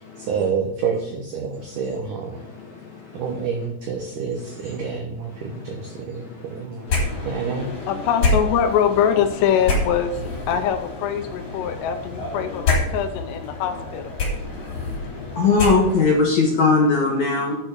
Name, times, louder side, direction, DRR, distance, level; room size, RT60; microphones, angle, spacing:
voice 1, 0.2-2.4 3.1-6.9 7.2-7.7, right 6 dB, 70° right, 2 dB, 2.0 m, -28 dB
sound 1, 6.9-16.2, left 2 dB, 45° left, 4.9 m, -27 dB
voice 2, 7.9-10.1 10.5-14.1, left 8 dB, 80° left, 7 dB, 2.8 m, -23 dB
voice 3, 15.4-17.6, left 4 dB, 60° left, -1 dB, 2.0 m, -18 dB
9.0 x 6.3 x 6.2 m, 0.86 s
omnidirectional pair, 5.0 m